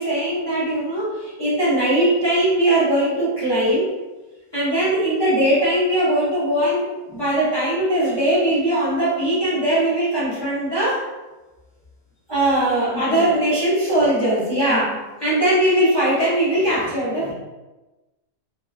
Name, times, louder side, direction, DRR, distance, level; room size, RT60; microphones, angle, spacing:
voice 1, 0.0-3.9 4.5-11.0 12.3-14.9 15.2-17.3, right 1 dB, 25° left, -10 dB, 0.6 m, -20 dB
voice 2, 12.9-13.3 14.7-15.0 17.2-17.3, left 2 dB, 20° right, -10 dB, 0.4 m, -33 dB
2.9 x 2.2 x 2.3 m, 1.1 s
omnidirectional pair, 1.5 m